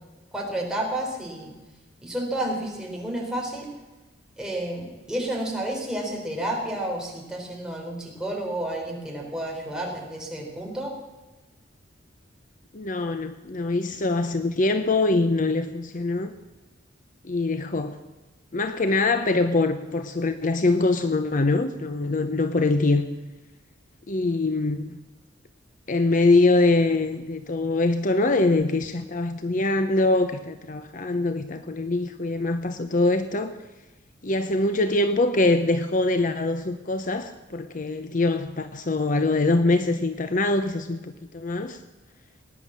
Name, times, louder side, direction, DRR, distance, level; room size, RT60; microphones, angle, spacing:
voice 1, 0.3-1.5 2.0-3.7 4.4-10.9, right 1 dB, 5° right, -2 dB, 3.9 m, -30 dB
voice 2, 12.7-16.3 17.2-18.0 18.5-23.0 24.1-25.0 25.9-33.6 34.2-41.8, left 2 dB, 45° left, 9 dB, 0.8 m, -23 dB
19.5 x 10.0 x 7.4 m, 1.1 s
head